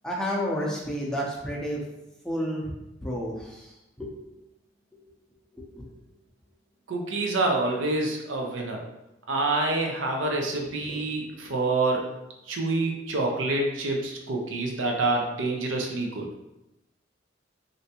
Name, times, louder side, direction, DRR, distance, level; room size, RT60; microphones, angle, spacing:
voice 1, 0.0-1.8 2.2-2.6 3.0-4.1 4.9-5.0 5.5-5.8, equal, 5° left, -4 dB, 0.5 m, -31 dB
voice 2, 6.9-8.8 9.3-12.0 12.5-16.3, right 2 dB, 90° right, 1 dB, 0.6 m, -27 dB
3.2 x 2.6 x 2.8 m, 0.92 s
head